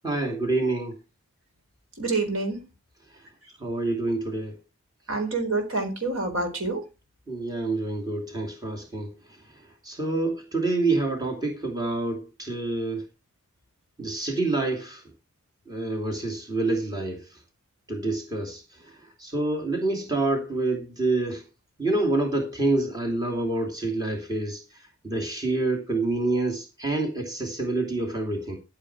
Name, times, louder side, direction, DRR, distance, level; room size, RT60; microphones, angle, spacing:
voice 1, 0.0-1.0 3.6-4.6 7.3-9.1 9.8-13.0 14.0-15.0 15.7-17.4 17.9-18.6 19.2-21.4 21.8-24.6 25.0-28.6, right 2 dB, 20° right, 2.9 m, -27 dB
voice 2, 2.0-2.7 5.1-6.9, right 3 dB, 65° right, 4.4 m, -27 dB
13.5 x 7.4 x 4.8 m
head